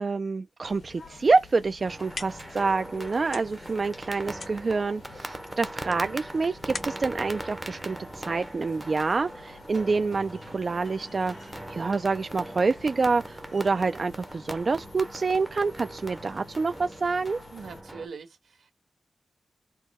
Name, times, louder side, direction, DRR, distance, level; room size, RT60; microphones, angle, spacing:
voice 1, 0.0-17.4, right 4 dB, 40° right, 0.3 m, -27 dB
sound 1, 0.6-17.8, left 4 dB, 75° left, 1.6 m, -51 dB
sound 2, 1.8-8.6, left 3 dB, 50° left, 0.8 m, -44 dB
sound 3, 1.8-18.1, right 1 dB, 10° right, 0.6 m, -40 dB
voice 2, 17.5-18.7, right 5 dB, 80° right, 1.6 m, -42 dB
4.6 x 2.2 x 4.2 m
wide cardioid pair, 140°, 0 cm